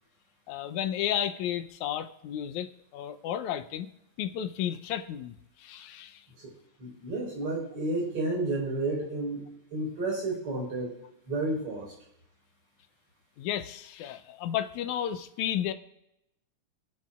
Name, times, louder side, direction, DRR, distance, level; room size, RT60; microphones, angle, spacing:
voice 1, 0.5-3.9 4.2-6.2 13.4-15.7, left 10 dB, 80° left, 9 dB, 2.1 m, -33 dB
voice 2, 6.8-9.4 9.7-10.9 11.3-12.0, right 2 dB, 50° right, -1 dB, 5.3 m, -31 dB
25.5 x 10.5 x 2.4 m, 0.84 s
omnidirectional pair, 3.4 m